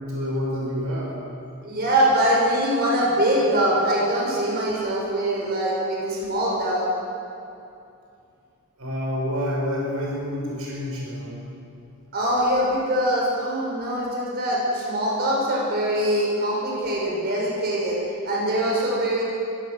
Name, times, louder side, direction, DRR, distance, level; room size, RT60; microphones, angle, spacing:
voice 1, 0.1-1.1 8.8-11.4, equal, 75° right, -4 dB, 5.7 m, -28 dB
voice 2, 1.6-6.8 12.1-19.2, right 1 dB, 45° right, -4 dB, 6.2 m, -23 dB
23.0 x 17.5 x 6.7 m, 2.6 s
head